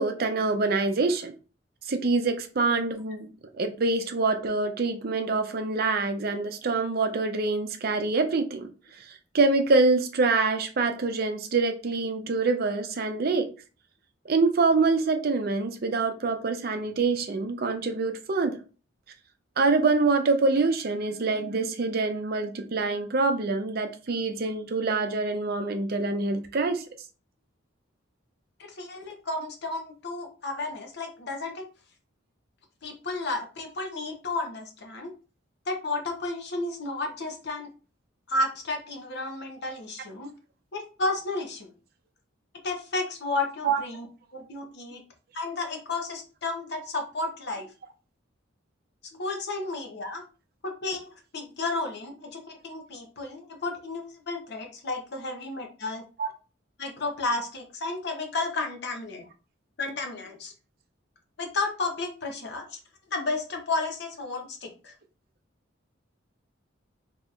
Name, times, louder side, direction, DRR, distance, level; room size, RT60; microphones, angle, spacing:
voice 1, 0.0-1.3 1.9-3.3 3.5-8.7 9.3-13.5 14.3-18.6 19.6-26.8 43.6-43.8 56.2-56.3, right 3 dB, 50° right, 0.5 m, -25 dB
voice 2, 28.6-31.7 32.8-35.1 35.7-37.7 38.3-40.3 40.7-41.7 42.6-44.1 44.3-45.0 45.3-47.7 49.2-50.2 50.6-56.0 56.8-59.3 59.8-60.5 61.4-62.8 63.1-64.9, left 2 dB, 60° left, 0.8 m, -32 dB
3.9 x 2.8 x 2.4 m
head